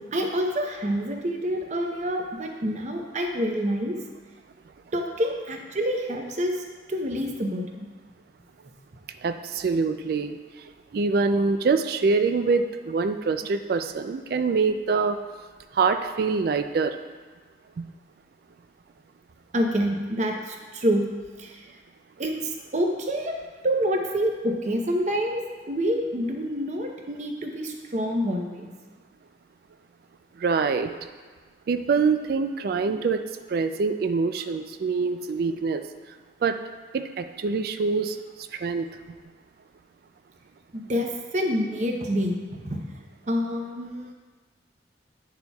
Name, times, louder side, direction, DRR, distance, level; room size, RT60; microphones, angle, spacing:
voice 1, 0.1-3.9 4.9-6.5 6.9-7.9 12.4-12.5 14.9-15.0 19.5-21.1 21.4-21.6 22.2-22.3 22.7-23.3 23.6-25.4 25.7-28.7 32.9-33.0 35.5-35.6 40.7-41.1 41.3-42.9 43.3-44.1, equal, 40° right, 2 dB, 0.7 m, -27 dB
voice 2, 9.2-10.4 10.9-15.2 15.8-16.9 17.8-17.9 30.4-30.9 31.7-33.2 33.5-35.8 36.4-36.6 36.9-38.2 38.6-38.8, right 4 dB, 55° right, 8 dB, 0.3 m, -24 dB
9.5 x 6.6 x 2.3 m, 1.4 s
head